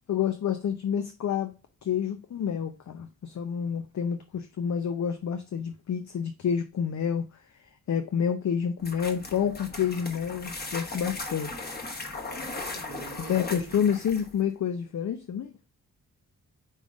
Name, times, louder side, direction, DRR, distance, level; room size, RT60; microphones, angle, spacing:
voice 1, 0.1-1.5 1.8-7.3 7.9-11.7 13.3-15.5, left 8 dB, 60° left, 0.7 m, -28 dB
sound 1, 8.8-14.4, left 2 dB, 30° left, 1.3 m, -38 dB
voice 2, 12.1-13.8, right 5 dB, 50° right, 0.9 m, -45 dB
5.4 x 3.7 x 5.1 m
wide cardioid pair, 110°, 32 cm